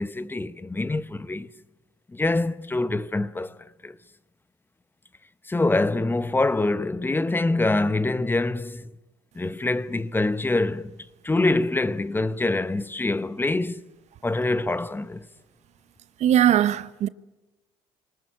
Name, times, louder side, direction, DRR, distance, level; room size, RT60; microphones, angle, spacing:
voice 1, 0.0-1.5 2.1-3.6 3.8-3.9 5.5-8.9 9.4-11.0 11.2-13.8 14.2-15.3, left 2 dB, 15° left, 0.9 m, -25 dB
voice 2, 16.2-17.1, right 11 dB, 55° right, 0.8 m, -20 dB
25.0 x 19.5 x 9.3 m
hypercardioid pair, 70°, 14 cm